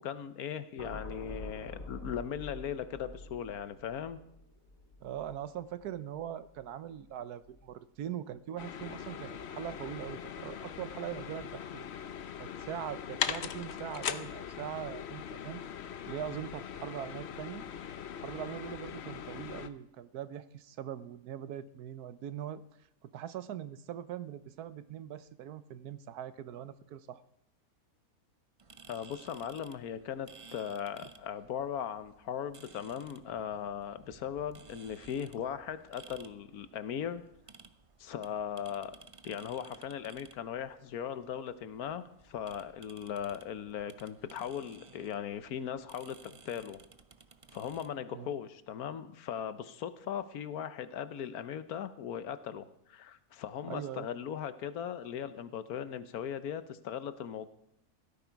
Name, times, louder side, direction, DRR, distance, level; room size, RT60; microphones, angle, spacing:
voice 1, 0.0-4.2 28.9-37.2 38.0-38.9 39.2-46.8 47.5-57.5, left 8 dB, 75° left, 12 dB, 1.3 m, -38 dB
sound 1, 0.8-7.1 7.4-7.7, left 2 dB, 35° left, 2.5 m, -47 dB
voice 2, 5.0-11.9 12.4-15.6 16.1-17.7 18.2-22.6 23.0-27.2 48.1-48.3 53.7-54.1, right 10 dB, 85° right, 14 dB, 1.3 m, -41 dB
sound 2, 8.6-19.7, left 8 dB, 55° left, 0.9 m, -40 dB
sound 3, 28.6-47.9, right 4 dB, 45° right, 0.4 m, -57 dB
16.0 x 13.5 x 4.6 m, 0.79 s
omnidirectional pair, 1.6 m